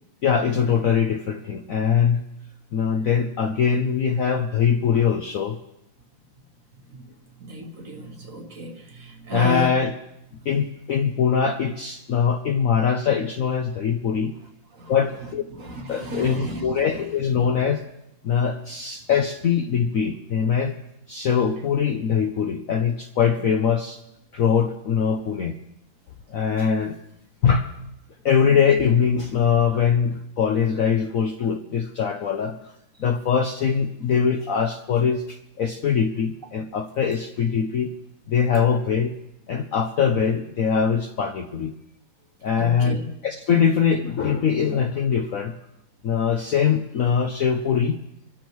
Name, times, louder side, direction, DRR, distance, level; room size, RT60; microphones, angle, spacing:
voice 1, 0.2-2.2 2.7-5.6 9.3-10.0 10.5-14.3 14.9-15.4 15.9-17.8 18.2-20.7 21.1-24.0 24.3-25.6 26.3-27.0 27.4-27.7 28.2-32.7 33.0-37.9 38.3-39.1 39.5-41.7 42.4-43.0 43.2-45.5 46.0-48.0, left 7 dB, 60° left, 0.9 m, -22 dB
voice 2, 7.4-9.7 14.8-14.9 15.6-16.7 42.6-43.1, right 1 dB, 45° right, 1.6 m, -33 dB
27.0 x 13.5 x 3.1 m
omnidirectional pair, 2.1 m